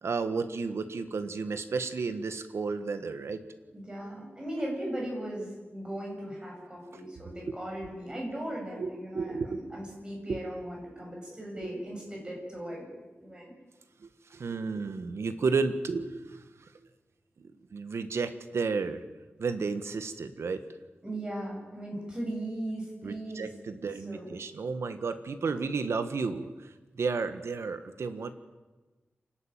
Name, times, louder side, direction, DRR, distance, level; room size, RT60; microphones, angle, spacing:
voice 1, 0.0-3.4 8.8-9.8 10.3-10.4 14.0-16.4 17.4-19.0 19.4-20.6 23.0-28.3, right 4 dB, 85° right, 10 dB, 1.6 m, -32 dB
voice 2, 3.7-12.9 13.2-13.5 21.0-23.5 24.1-24.3, right 1 dB, 20° right, -2 dB, 7.8 m, -38 dB
27.0 x 12.0 x 9.1 m, 1.2 s
wide cardioid pair, 120°, 4 cm